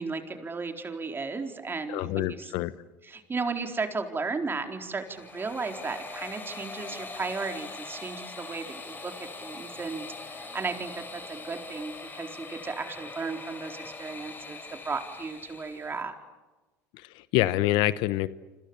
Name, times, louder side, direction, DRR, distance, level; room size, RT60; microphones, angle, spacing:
voice 1, 0.0-2.5 3.1-16.1, right 4 dB, 25° right, 4 dB, 4.2 m, -35 dB
voice 2, 1.9-2.7 16.9-18.3, left 16 dB, 70° left, 15 dB, 1.0 m, -26 dB
sound 1, 4.9-16.0, left 3 dB, 25° left, 5.6 m, -42 dB
28.5 x 26.0 x 7.2 m, 1.2 s
hypercardioid pair, 75°, 8 cm